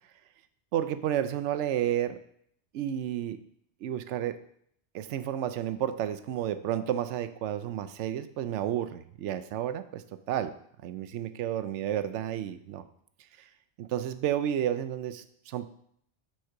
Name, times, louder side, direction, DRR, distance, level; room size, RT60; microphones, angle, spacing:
voice 1, 0.7-2.2 2.7-3.4 3.8-4.4 4.9-10.6 10.8-12.8 13.8-15.7, right 11 dB, 85° right, 12 dB, 0.9 m, -31 dB
6.4 x 4.4 x 5.8 m, 0.68 s
omnidirectional pair, 1.2 m